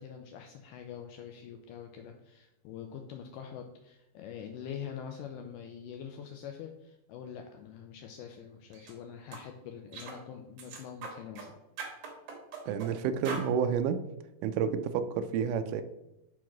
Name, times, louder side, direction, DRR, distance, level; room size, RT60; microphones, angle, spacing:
voice 1, 0.0-11.5, left 8 dB, 80° left, 4 dB, 1.9 m, -44 dB
sound 1, 8.7-8.9 9.3-9.5 9.9-10.2 10.6-11.5 11.8-12.9 13.2-13.5, right 4 dB, 60° right, 2.5 m, -41 dB
voice 2, 12.7-14.0 14.4-15.8, right 7 dB, 85° right, 9 dB, 1.9 m, -30 dB
5.9 x 4.7 x 5.8 m, 0.93 s
omnidirectional pair, 4.2 m